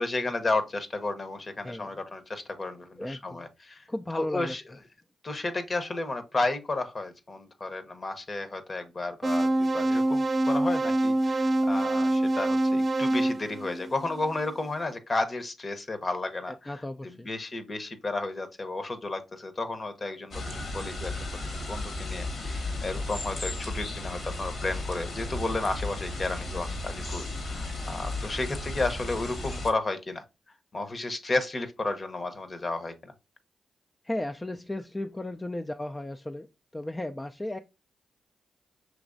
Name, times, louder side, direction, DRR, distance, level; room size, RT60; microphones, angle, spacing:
voice 1, 0.0-3.8 4.1-4.6 5.2-16.7 17.2-30.2 30.7-33.1, left 2 dB, 40° left, 1.0 m, -32 dB
voice 2, 3.0-3.5 3.9-4.5 16.5-17.3 34.0-36.5 36.7-37.6, left 1 dB, 20° left, 0.4 m, -35 dB
sound 1, 9.2-14.4, right 1 dB, 45° right, 0.6 m, -25 dB
sound 2, 20.3-29.7, left 2 dB, 65° left, 1.5 m, -34 dB
6.0 x 3.0 x 2.6 m
supercardioid pair, 50°, 0 cm